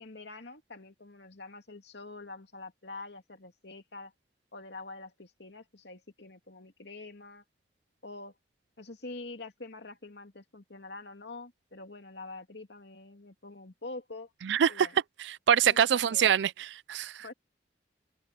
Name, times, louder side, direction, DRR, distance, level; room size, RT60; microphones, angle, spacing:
voice 1, 0.0-4.1 4.5-7.4 8.0-8.3 8.8-14.3 14.7-15.0 15.6-16.4 17.2-17.3, left 3 dB, 70° left, 2.5 m, -45 dB
voice 2, 14.4-14.9 15.2-17.2, right 8 dB, 75° right, 0.4 m, -25 dB
head